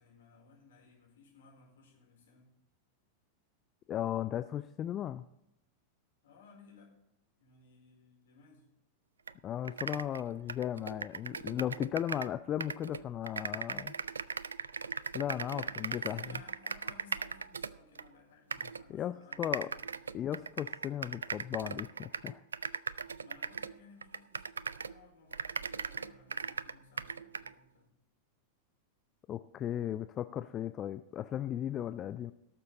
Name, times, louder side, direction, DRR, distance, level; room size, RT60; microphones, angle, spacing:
voice 1, 0.0-2.5 6.2-6.9 7.4-8.7 15.5-20.4 23.2-28.0, left 4 dB, 60° left, -1 dB, 4.3 m, -60 dB
voice 2, 3.9-5.2 9.4-13.9 15.1-16.4 18.9-19.7 20.1-22.4 29.3-32.3, left 11 dB, 30° left, 11 dB, 0.4 m, -36 dB
sound 1, 9.3-9.4 9.6-12.3 12.6-18.1 18.5-18.8 19.3-25.0 25.3-27.5, right 5 dB, 75° right, 0.3 m, -39 dB
18.0 x 6.9 x 4.0 m, 0.87 s
figure-of-eight pair, 90°, 0 cm